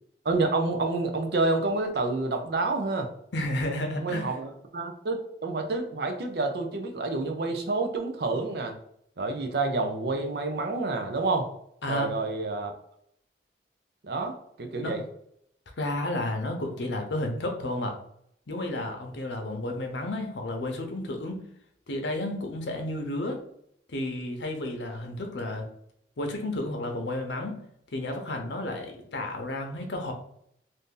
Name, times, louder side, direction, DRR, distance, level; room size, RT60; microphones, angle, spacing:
voice 1, 0.2-3.1 4.0-8.8 9.2-11.5 11.9-12.7 14.0-15.0, right 3 dB, 60° right, 5 dB, 0.5 m, -28 dB
voice 2, 3.3-4.3 11.8-12.1 14.8-14.9 15.8-17.9 18.5-21.4 21.9-23.4 23.9-25.6 26.2-27.5 27.9-30.1, left 1 dB, 80° left, 3 dB, 0.7 m, -32 dB
2.6 x 2.6 x 3.6 m, 0.70 s
head